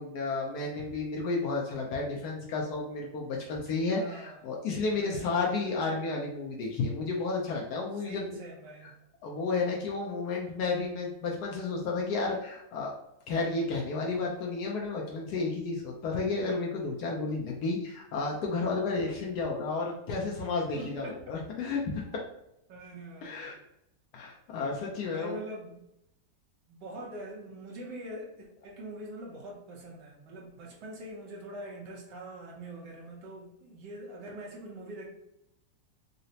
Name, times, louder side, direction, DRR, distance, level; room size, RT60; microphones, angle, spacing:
voice 1, 0.0-8.4 9.2-12.9 13.3-22.0 23.2-23.6 24.1-25.4, left 3 dB, 70° left, -1 dB, 1.0 m, -32 dB
voice 2, 3.9-4.5 4.9-5.5 7.9-9.0 20.7-21.3 22.7-23.6 25.0-25.8 26.7-35.1, right 1 dB, 70° right, -1 dB, 1.4 m, -44 dB
3.9 x 2.1 x 2.7 m, 0.81 s
omnidirectional pair, 2.0 m